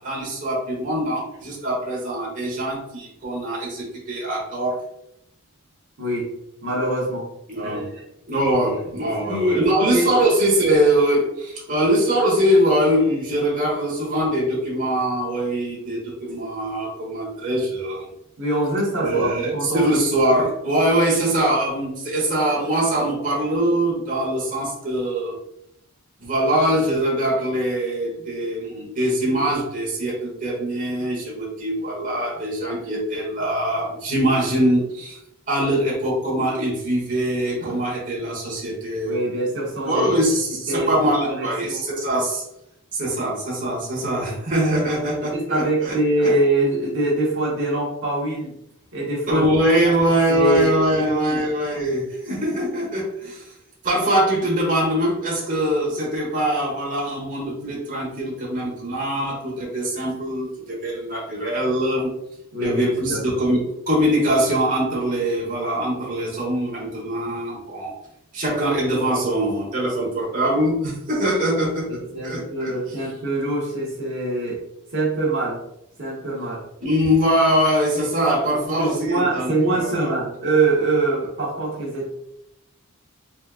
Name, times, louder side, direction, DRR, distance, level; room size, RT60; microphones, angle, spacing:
voice 1, 0.0-4.8 7.5-7.9 8.3-18.1 19.0-25.3 26.2-35.2 35.5-39.2 39.8-42.4 42.9-46.0 46.2-46.3 49.3-53.5 53.8-62.1 62.6-67.9 68.3-71.9 72.2-72.7 76.8-80.1, right 1 dB, 40° right, -4 dB, 1.3 m, -22 dB
voice 2, 6.0-6.3 6.6-7.3 7.6-8.0 9.2-10.3 18.4-19.8 39.1-40.1 40.5-40.9 41.3-41.8 45.3-48.5 48.9-49.5 49.8-49.9 50.3-51.4 62.5-63.2 71.9-74.6 74.9-75.6 76.0-76.6 78.8-82.1, right 2 dB, 60° right, -6 dB, 1.3 m, -24 dB
4.2 x 3.6 x 2.5 m, 0.80 s
head